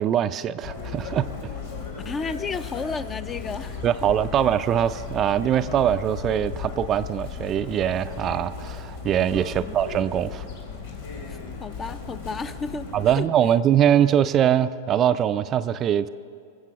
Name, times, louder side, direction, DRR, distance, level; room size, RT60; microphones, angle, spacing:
voice 1, 0.0-1.3 3.8-10.5 12.9-16.1, right 10 dB, 35° right, 11 dB, 0.4 m, -22 dB
Chirp tweet, 0.6-13.2, left 5 dB, 80° left, 3.0 m, -36 dB
voice 2, 2.0-4.1 9.5-9.8 11.3-13.3, left 4 dB, 20° left, 13 dB, 0.6 m, -33 dB
21.0 x 7.6 x 5.8 m, 2.3 s
hypercardioid pair, 110°, 0 cm